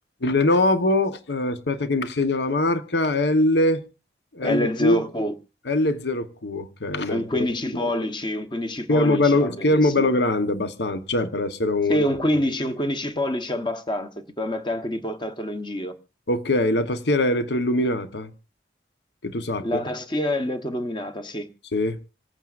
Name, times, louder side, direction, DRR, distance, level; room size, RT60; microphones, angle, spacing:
voice 1, 0.2-3.8 4.3-5.0 5.7-7.5 7.7-7.9 8.9-12.0 16.3-18.3 19.2-19.8 21.7-22.0, left 2 dB, 70° left, 1.1 m, -22 dB
voice 2, 4.4-5.3 7.1-10.1 11.9-14.1 14.4-15.9 19.6-21.5, left 1 dB, 25° left, 1.0 m, -26 dB
27.0 x 9.0 x 2.5 m
head